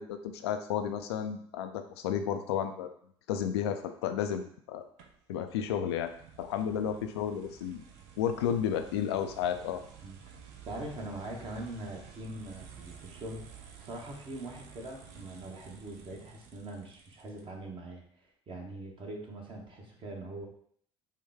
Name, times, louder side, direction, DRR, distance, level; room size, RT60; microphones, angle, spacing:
voice 1, 0.0-2.9 3.3-4.8 5.3-6.1 6.4-7.8 8.2-9.8, left 9 dB, 70° left, 7 dB, 0.4 m, -32 dB
sound 1, 5.0-17.7, right 7 dB, 55° right, 0.7 m, -52 dB
voice 2, 10.6-18.0 18.5-20.5, right 1 dB, 35° right, 0 dB, 1.2 m, -42 dB
5.4 x 2.2 x 3.5 m, 0.62 s
figure-of-eight pair, 55°, 14 cm